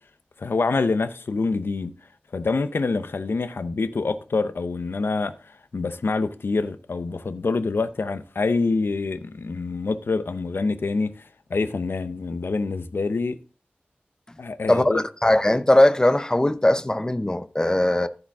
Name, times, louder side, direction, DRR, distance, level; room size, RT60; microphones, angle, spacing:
voice 1, 0.4-1.9 2.3-13.4 14.4-15.0, left 3 dB, 85° left, 0.7 m, -26 dB
voice 2, 14.7-18.1, left 1 dB, 20° left, 0.7 m, -20 dB
14.5 x 5.0 x 3.6 m
wide cardioid pair, 60°, 4 cm